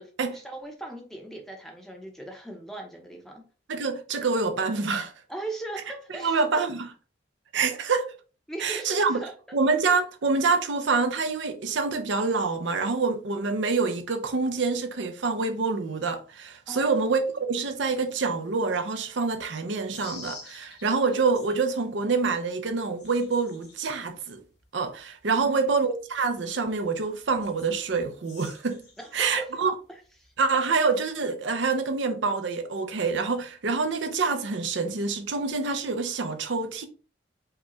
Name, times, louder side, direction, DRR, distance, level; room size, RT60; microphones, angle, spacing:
voice 1, 0.0-3.4 5.3-6.6 8.5-9.3 16.7-17.0 25.3-25.7 29.0-29.5 30.2-30.3, right 2 dB, ahead, 0.7 m, -39 dB
voice 2, 3.7-5.1 6.2-6.9 7.5-8.1 8.6-9.2 9.5-24.4 24.7-28.8 29.1-29.7 30.4-36.9, right 4 dB, 75° right, 0.6 m, -26 dB
sound 1, 19.9-21.7 22.1-29.3 29.7-30.4, left 3 dB, 55° left, 1.5 m, -49 dB
4.7 x 2.3 x 3.0 m
head